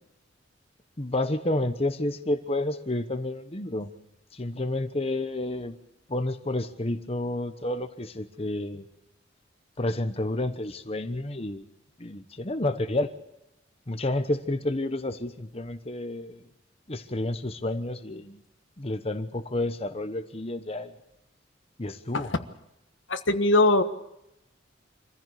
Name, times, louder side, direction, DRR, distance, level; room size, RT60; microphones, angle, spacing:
voice 1, 1.0-3.9 4.3-5.8 6.1-8.9 9.8-11.6 12.0-13.1 13.9-16.4 16.9-18.4 18.8-20.9 21.8-22.3, left 1 dB, 30° left, 8 dB, 1.1 m, -30 dB
voice 2, 23.1-23.8, left 2 dB, 85° left, 9 dB, 1.4 m, -21 dB
25.5 x 15.0 x 8.4 m, 0.86 s
head